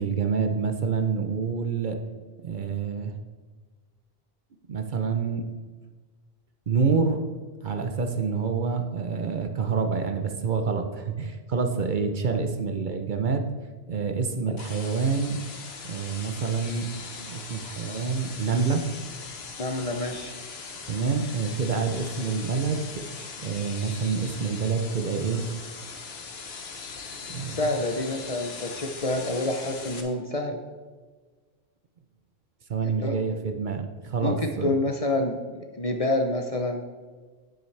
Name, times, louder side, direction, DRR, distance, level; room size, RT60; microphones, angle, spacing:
voice 1, 0.0-2.0 2.4-3.1 4.7-5.5 6.7-7.2 7.6-13.4 13.9-15.4 15.8-18.8 20.9-23.0 23.4-25.4 27.3-27.6 32.7-34.7, right 5 dB, 55° right, 5 dB, 0.8 m, -27 dB
sound 1, 14.6-30.0, left 5 dB, 75° left, 1.2 m, -40 dB
voice 2, 19.6-20.3 27.5-30.6 33.0-33.2 34.2-36.8, left 2 dB, 40° left, 4 dB, 0.6 m, -28 dB
9.7 x 7.8 x 3.3 m, 1.4 s
omnidirectional pair, 1.1 m